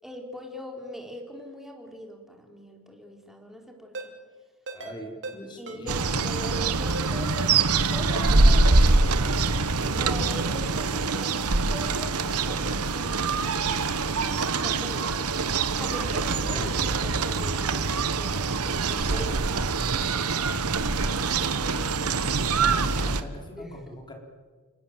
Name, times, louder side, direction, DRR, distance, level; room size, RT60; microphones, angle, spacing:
voice 1, 0.0-4.1 5.6-7.7 7.9-9.7 10.0-12.2 12.4-13.8 14.5-15.3 15.8-19.6 19.9-20.8 21.1-22.3 22.9-23.1 23.6-24.0, equal, ahead, 2 dB, 3.9 m, -41 dB
Ringtone, 3.9-4.1 4.7-4.9 5.2-5.4 5.7-5.8 6.4-6.6 6.9-7.1 7.4-7.5 8.1-8.4 8.7-8.8 9.1-9.2 9.8-10.1 10.4-10.5, right 3 dB, 55° right, 4.1 m, -37 dB
voice 2, 4.7-6.0 16.1-16.8 19.0-19.3 22.6-24.1, equal, 20° left, 2 dB, 4.6 m, -41 dB
sound 1, 5.9-23.2, right 3 dB, 85° right, 1.4 m, -24 dB
29.5 x 19.0 x 7.7 m, 1.4 s
head